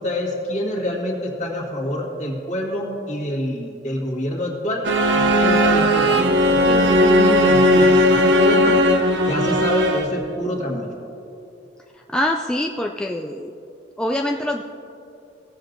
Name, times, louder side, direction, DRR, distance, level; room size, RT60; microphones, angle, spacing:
voice 1, 0.0-4.8 5.1-8.8 9.3-10.9, left 1 dB, 45° left, -2 dB, 1.8 m, -26 dB
sound 1, 4.8-10.3, equal, 90° right, 0.7 m, -17 dB
voice 2, 12.1-13.5 14.0-14.6, left 1 dB, 5° left, 1 dB, 0.3 m, -24 dB
17.0 x 7.5 x 2.6 m, 2.7 s
head